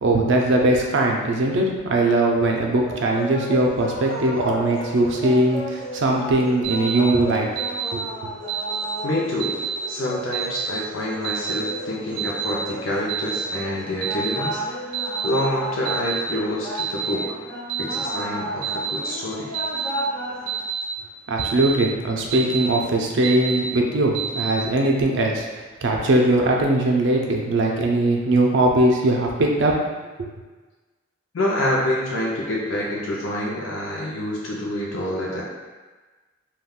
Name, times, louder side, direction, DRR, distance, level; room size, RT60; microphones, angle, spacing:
voice 1, 0.0-7.5 7.9-8.3 21.3-25.5 25.8-29.8 30.2-30.3, right 2 dB, 65° right, 1 dB, 0.4 m, -20 dB
sound 1, 2.8-20.6, right 1 dB, 45° left, 1.4 m, -33 dB
Alarm, 6.6-7.0 7.6-7.9 8.5-8.8 9.4-9.8 10.3-10.7 11.2-11.6 12.2-12.5 13.1-13.4 14.0-14.4 14.9-15.3 15.8-16.2 16.8-17.1 17.7-18.1 18.6-19.0 19.5-19.9 20.5-20.8 21.4-21.7 22.3-22.7 23.2-23.6 24.1-24.5, right 8 dB, 25° right, 0.9 m, -28 dB
voice 2, 9.0-14.9 15.2-17.4 17.8-19.6 31.3-35.4, left 1 dB, 75° left, -4 dB, 0.5 m, -27 dB
3.5 x 2.2 x 2.3 m, 1.3 s
head